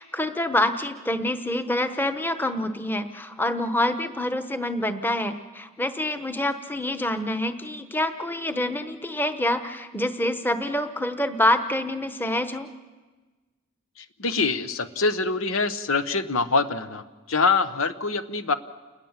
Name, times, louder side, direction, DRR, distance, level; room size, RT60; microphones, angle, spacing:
voice 1, 0.0-12.7, left 1 dB, 10° left, 9 dB, 1.0 m, -26 dB
voice 2, 14.0-17.0 17.3-18.5, left 4 dB, 90° left, 12 dB, 1.1 m, -24 dB
29.0 x 20.0 x 7.4 m, 1.3 s
head